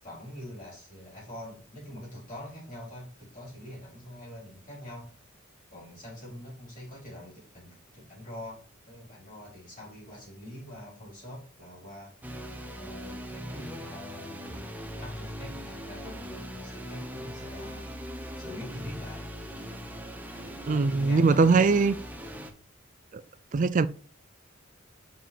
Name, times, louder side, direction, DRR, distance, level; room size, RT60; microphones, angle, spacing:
voice 1, 0.0-5.1 5.7-12.2 12.7-14.6 15.0-18.0 18.4-19.3 20.4-21.8, left 1 dB, 40° left, 4.2 m, -45 dB
sound 1, 12.2-22.5, equal, 10° right, 0.8 m, -40 dB
voice 2, 20.7-21.9 23.1-23.2 23.5-23.9, right 4 dB, 40° right, 0.4 m, -21 dB
5.6 x 5.1 x 5.1 m
head